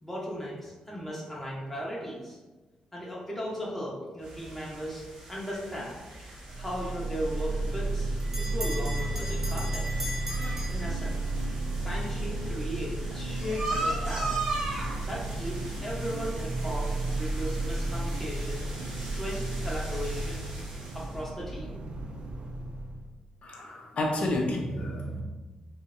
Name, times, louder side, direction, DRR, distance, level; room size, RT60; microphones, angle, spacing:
voice 1, 0.0-2.4 2.9-5.0 5.3-6.3 6.6-8.1 8.4-11.1 11.8-14.5 15.0-18.7 19.0-20.4 20.9-21.8, equal, 10° left, -6 dB, 0.7 m, -37 dB
sound 1, 4.2-21.2, right 2 dB, 85° right, 0.8 m, -40 dB
sound 2, 6.5-23.1, right 2 dB, 55° right, 0.4 m, -33 dB
Bell, 8.2-11.5, equal, 20° right, 1.0 m, -39 dB
voice 2, 23.4-25.2, left 1 dB, 60° left, 1 dB, 0.5 m, -30 dB
2.6 x 2.0 x 2.5 m, 1.2 s
supercardioid pair, 50°, 2 cm